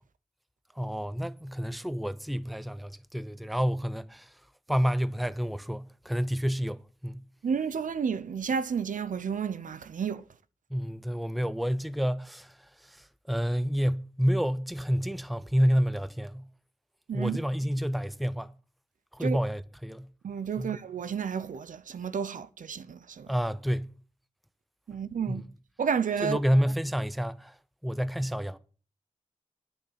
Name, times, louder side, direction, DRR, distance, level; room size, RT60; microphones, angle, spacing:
voice 1, 0.8-4.3 4.7-7.3 10.7-16.5 17.1-18.5 19.1-20.1 20.6-20.8 23.3-23.9 25.3-25.4 26.2-27.5 27.8-28.6, equal, ahead, 0.6 m, -29 dB
voice 2, 7.4-10.2 17.1-17.4 19.2-19.4 20.2-23.3 24.9-25.4 25.8-26.4, right 7 dB, 80° right, 0.7 m, -31 dB
10.5 x 6.6 x 7.3 m
wide cardioid pair, 115°, 13 cm